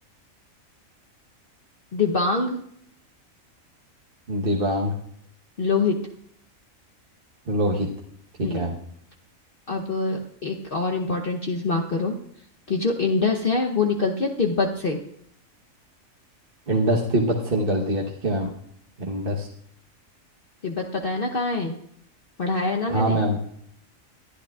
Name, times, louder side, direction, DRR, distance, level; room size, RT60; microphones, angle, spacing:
voice 1, 1.9-2.6 5.6-6.1 8.4-8.7 9.7-12.2 12.7-15.0 20.6-21.7 22.4-23.2, left 3 dB, 45° left, 0 dB, 1.0 m, -24 dB
voice 2, 4.3-4.9 7.5-7.9 8.4-8.7 16.7-18.5 19.0-19.5 22.9-23.4, right 1 dB, 45° right, -1 dB, 1.3 m, -23 dB
21.5 x 12.0 x 2.4 m, 0.69 s
omnidirectional pair, 1.4 m